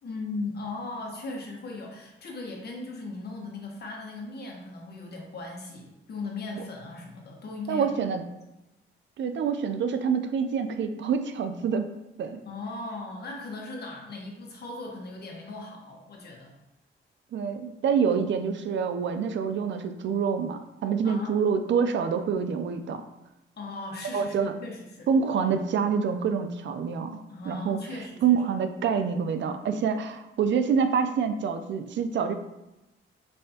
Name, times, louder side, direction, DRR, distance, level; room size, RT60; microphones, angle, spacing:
voice 1, 0.0-8.1 12.5-16.5 21.0-21.3 23.6-25.1 27.3-28.4, left 2 dB, 50° left, 0 dB, 1.2 m, -38 dB
voice 2, 7.7-8.2 9.2-11.9 12.2-12.4 17.3-23.0 24.1-24.6 25.1-27.2 27.5-32.3, right 6 dB, 60° right, 8 dB, 0.5 m, -26 dB
5.5 x 3.3 x 2.8 m, 0.94 s
cardioid pair, 105°, 21 cm